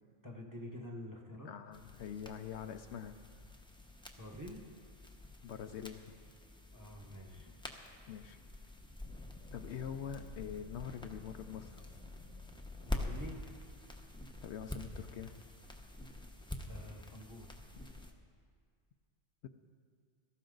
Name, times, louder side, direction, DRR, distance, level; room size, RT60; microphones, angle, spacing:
voice 1, 0.2-1.5 4.1-4.6 6.7-7.5 12.8-13.4 16.6-17.5, left 1 dB, 15° right, 1 dB, 1.2 m, -47 dB
voice 2, 1.4-3.2 5.4-6.0 8.1-8.4 9.5-11.8 14.4-15.4 19.4-19.5, left 8 dB, 70° left, 8 dB, 0.8 m, -44 dB
sound 1, 1.7-18.1, left 1 dB, 5° left, 0.7 m, -47 dB
17.0 x 13.5 x 3.9 m, 2.1 s
omnidirectional pair, 1.3 m